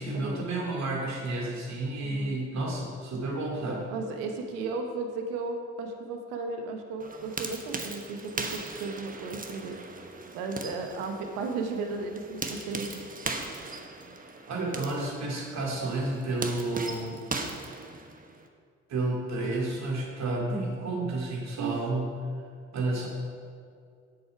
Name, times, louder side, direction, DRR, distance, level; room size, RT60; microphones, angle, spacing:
voice 1, 0.0-3.9 14.5-17.2 18.9-22.2 22.7-23.1, right 2 dB, 60° right, -1 dB, 2.5 m, -31 dB
voice 2, 2.0-2.3 3.9-9.8 10.3-13.0 21.6-21.7, right 4 dB, 90° right, 4 dB, 1.0 m, -35 dB
sound 1, 7.0-18.5, right 3 dB, 25° right, 1.1 m, -39 dB
7.9 x 7.0 x 5.8 m, 2.3 s
supercardioid pair, 60°, 31 cm